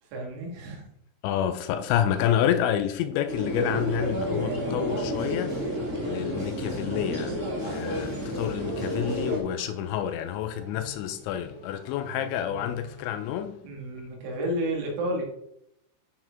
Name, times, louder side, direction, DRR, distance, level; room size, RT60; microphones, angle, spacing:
voice 1, 0.0-0.9 4.8-5.1 8.1-8.3 13.6-15.2, right 1 dB, 85° right, 4.5 m, -32 dB
voice 2, 1.2-13.6, left 10 dB, 80° left, 2.7 m, -29 dB
sound 1, 3.3-9.4, equal, 25° right, 1.7 m, -30 dB
Snare drum, 5.2-5.9 6.4-7.1 7.6-9.5, right 3 dB, 5° left, 1.6 m, -50 dB
sound 2, 6.5-13.3, right 3 dB, 55° right, 1.7 m, -47 dB
12.5 x 4.6 x 4.5 m
omnidirectional pair, 5.5 m